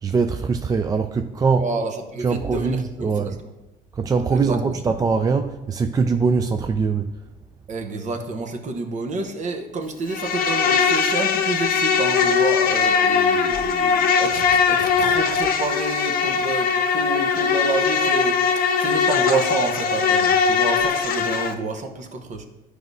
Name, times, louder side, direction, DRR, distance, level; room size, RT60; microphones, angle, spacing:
voice 1, 0.0-1.7 2.2-3.4 3.9-7.1, right 5 dB, 20° right, 7 dB, 0.3 m, -22 dB
voice 2, 1.6-3.3 4.3-4.6 7.7-22.5, right 3 dB, 45° right, 5 dB, 0.9 m, -29 dB
Insect, 10.1-21.5, left 6 dB, 55° left, 0.7 m, -20 dB
11.5 x 4.8 x 2.7 m, 1.0 s
cardioid pair, 110°, 17 cm